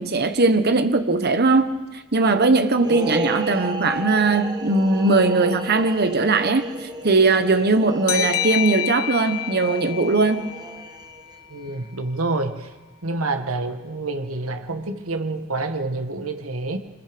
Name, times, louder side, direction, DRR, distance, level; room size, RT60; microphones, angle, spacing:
voice 1, 0.0-1.7 2.1-6.6 7.0-10.5, right 3 dB, 45° right, 1.3 m, -19 dB
sound 1, 2.8-11.4, right 1 dB, 20° right, 1.3 m, -33 dB
sound 2, 8.1-11.4, left 15 dB, 75° left, 0.7 m, -28 dB
voice 2, 11.5-12.7 13.0-16.8, right 2 dB, 75° right, 1.6 m, -27 dB
25.5 x 20.5 x 5.3 m
head